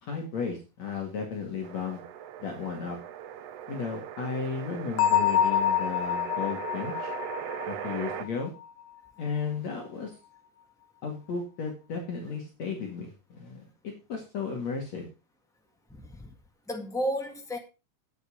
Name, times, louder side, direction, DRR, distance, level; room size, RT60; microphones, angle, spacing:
voice 1, 0.0-2.0 2.4-3.0 3.7-7.1 7.7-8.5 9.2-10.2 11.0-15.1, left 5 dB, 55° left, 3.1 m, -34 dB
sound 1, 1.6-8.3, right 10 dB, 75° right, 1.4 m, -39 dB
Bell, 5.0-8.6, left 10 dB, 90° left, 2.8 m, -27 dB
voice 2, 15.9-16.3 16.7-17.6, equal, 5° left, 0.4 m, -32 dB
9.6 x 9.2 x 5.0 m
omnidirectional pair, 4.0 m